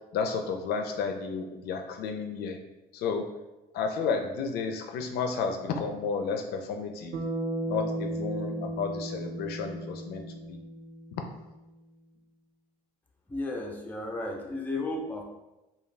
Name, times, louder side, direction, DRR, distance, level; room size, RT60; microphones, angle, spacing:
voice 1, 0.1-2.6 2.9-3.3 3.7-7.2 7.6-10.6, left 5 dB, 70° left, 5 dB, 0.4 m, -32 dB
Bass guitar, 7.1-11.5, right 1 dB, 70° right, 0.6 m, -35 dB
voice 2, 13.3-15.2, left 2 dB, 10° left, 1 dB, 0.4 m, -34 dB
2.4 x 2.3 x 3.1 m, 1.0 s
cardioid pair, 110°, 17 cm